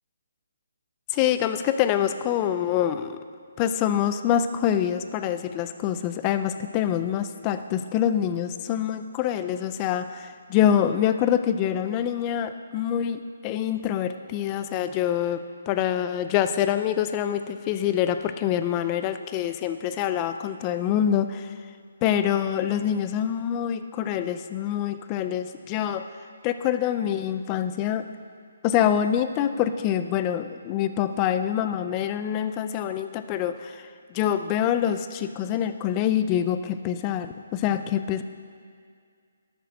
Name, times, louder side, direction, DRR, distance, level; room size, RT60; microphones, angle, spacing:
voice 1, 1.1-3.2 3.6-21.5 22.0-26.0 26.4-28.1 28.6-33.8 34.1-38.2, left 10 dB, 15° left, 10 dB, 0.4 m, -25 dB
12.5 x 6.7 x 6.5 m, 2.1 s
hypercardioid pair, 175°, 0 cm